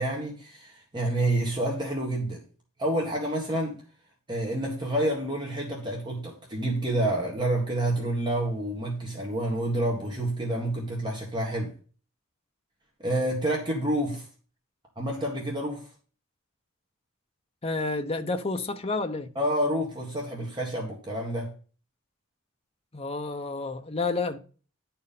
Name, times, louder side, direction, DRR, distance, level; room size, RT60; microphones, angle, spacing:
voice 1, 0.0-2.4 2.8-3.7 4.3-11.7 13.0-14.3 15.0-15.9 19.4-21.5, right 1 dB, 20° right, 1.8 m, -28 dB
voice 2, 17.6-19.3 22.9-24.4, left 3 dB, 30° left, 0.8 m, -30 dB
11.0 x 4.4 x 5.4 m
head